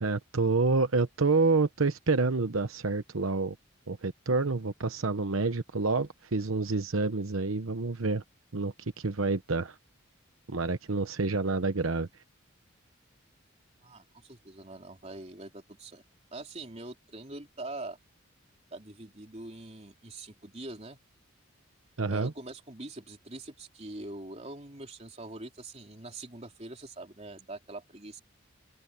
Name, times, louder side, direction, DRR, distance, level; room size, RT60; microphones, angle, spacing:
voice 1, 0.0-3.6 3.9-8.2 8.5-9.8 10.5-12.1 22.0-22.3, right 3 dB, 85° right, 1.0 m, -28 dB
voice 2, 13.8-16.0 16.3-18.0 18.7-21.0 22.1-28.2, right 2 dB, 30° right, 3.5 m, -43 dB
open air
head